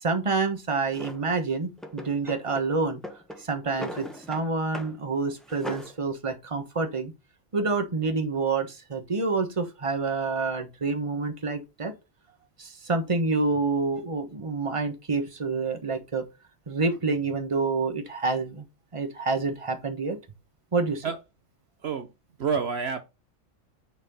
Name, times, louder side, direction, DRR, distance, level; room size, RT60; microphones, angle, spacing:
voice 1, 0.0-3.0 3.4-7.1 7.5-11.9 12.6-16.2 16.7-18.6 18.9-20.2 20.7-21.1, right 4 dB, 25° right, 1.3 m, -28 dB
Drawer open or close, 0.9-1.2 1.8-2.7 3.0-4.5 4.7-5.0 5.3-5.9, left 1 dB, ahead, 1.1 m, -39 dB
voice 2, 22.4-23.0, right 6 dB, 60° right, 1.0 m, -28 dB
9.4 x 4.3 x 5.5 m
omnidirectional pair, 1.3 m